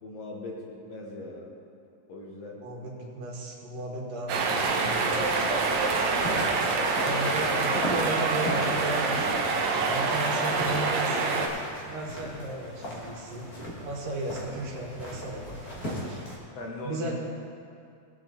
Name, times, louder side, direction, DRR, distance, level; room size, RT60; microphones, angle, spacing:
voice 1, 0.0-1.5 2.1-2.6 7.1-7.2 16.5-17.1, left 2 dB, 60° left, -2 dB, 2.1 m, -40 dB
voice 2, 2.6-6.7 7.0-11.5 11.9-13.5 13.8-16.2 16.8-17.1, right 2 dB, 85° right, -2 dB, 3.3 m, -35 dB
sound 1, 4.3-11.5, right 4 dB, 70° right, 2.0 m, -26 dB
sound 2, 5.7-16.4, equal, 35° left, 1.8 m, -38 dB
19.0 x 7.0 x 3.9 m, 2.4 s
omnidirectional pair, 3.7 m